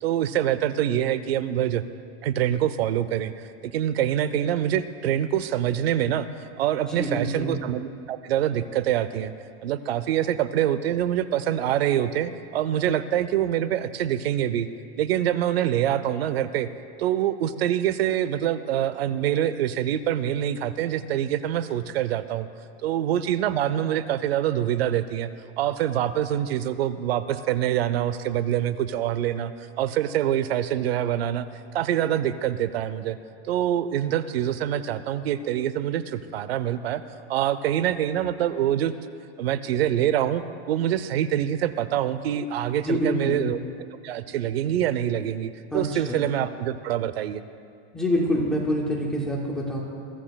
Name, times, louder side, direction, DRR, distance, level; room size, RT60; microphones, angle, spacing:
voice 1, 0.0-1.8 2.2-3.3 3.6-6.3 6.6-9.3 9.6-14.7 15.0-16.7 17.0-22.5 22.8-25.3 25.6-29.5 29.8-31.5 31.7-33.2 33.5-37.0 37.3-38.9 39.4-43.6 44.0-47.4, right 11 dB, 70° right, 13 dB, 0.7 m, -25 dB
voice 2, 6.8-7.6 42.9-43.4 45.7-46.2 47.9-49.8, equal, ahead, -4 dB, 0.3 m, -26 dB
22.0 x 15.0 x 2.3 m, 2.3 s
supercardioid pair, 180°, 32 cm